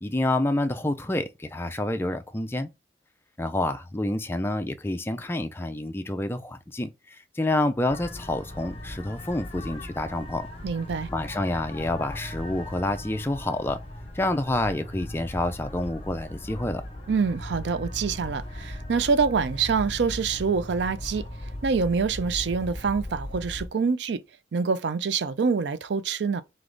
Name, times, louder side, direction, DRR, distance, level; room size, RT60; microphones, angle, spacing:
voice 1, 0.0-2.7 3.4-10.5 11.1-13.8 14.1-16.8, left 1 dB, 10° left, 0.4 m, -28 dB
sound 1, 7.9-23.7, left 1 dB, 30° left, 1.1 m, -38 dB
voice 2, 10.6-11.1 17.1-21.3 21.6-24.2 24.5-26.4, right 5 dB, 65° right, 0.4 m, -26 dB
3.9 x 3.4 x 3.8 m
head